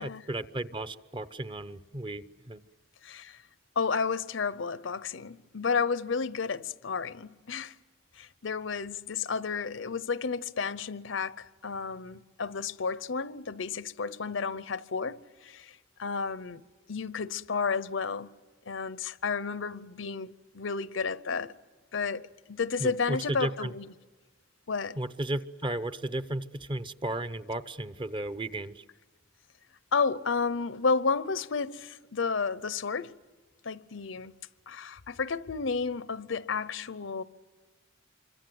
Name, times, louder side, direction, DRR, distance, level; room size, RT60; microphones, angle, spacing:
voice 1, 0.0-2.6 22.8-23.7 24.9-28.8, right 1 dB, 25° right, 0.8 m, -34 dB
voice 2, 3.0-3.4 3.8-7.7 8.1-16.6 16.9-18.4 18.7-21.5 21.9-23.9 24.7-25.0 29.9-33.2 33.6-34.3 34.7-37.2, left 5 dB, 75° left, 0.8 m, -32 dB
27.0 x 25.0 x 7.8 m
head